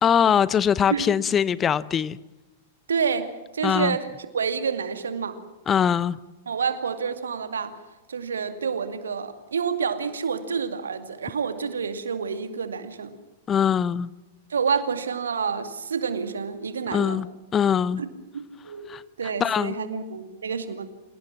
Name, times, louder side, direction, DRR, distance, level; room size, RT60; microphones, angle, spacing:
voice 1, 0.0-2.2 3.6-4.0 5.7-6.2 13.5-14.1 16.9-17.3 17.5-18.0 18.9-19.0 19.4-19.7, left 8 dB, 20° left, 19 dB, 0.7 m, -22 dB
voice 2, 2.9-4.1 4.3-5.4 6.5-7.7 8.1-13.1 14.5-17.2 18.0-18.1 18.6-20.8, right 6 dB, 70° right, 8 dB, 2.3 m, -28 dB
27.5 x 18.0 x 7.4 m, 1.1 s
figure-of-eight pair, 95°, 0 cm